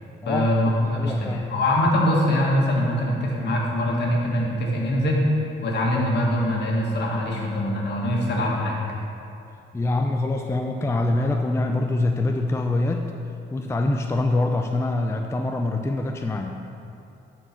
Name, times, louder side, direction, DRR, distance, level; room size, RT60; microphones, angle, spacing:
voice 1, 0.2-8.8, left 1 dB, 60° left, -2 dB, 1.8 m, -23 dB
voice 2, 0.8-1.5 9.7-13.1 13.5-16.6, left 2 dB, 15° left, 3 dB, 0.4 m, -24 dB
10.5 x 4.6 x 4.4 m, 2.6 s
cardioid pair, 90°, 20 cm